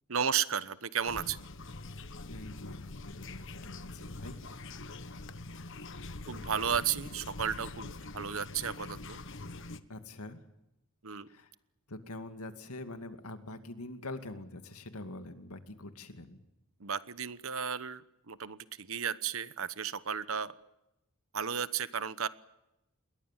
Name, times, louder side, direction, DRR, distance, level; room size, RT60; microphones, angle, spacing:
voice 1, 0.1-1.4 6.3-9.2 11.0-11.3 16.8-18.0 18.3-20.5 21.3-22.3, right 7 dB, 70° right, 15 dB, 1.2 m, -34 dB
Wasser - Badewanne freistehend Abfluss, 1.1-9.8, left 2 dB, 60° left, 1.2 m, -44 dB
voice 2, 2.2-4.4 9.9-10.4 11.3-11.5 11.9-16.4, left 2 dB, 90° left, 8 dB, 2.4 m, -44 dB
28.5 x 21.5 x 7.6 m, 0.89 s
head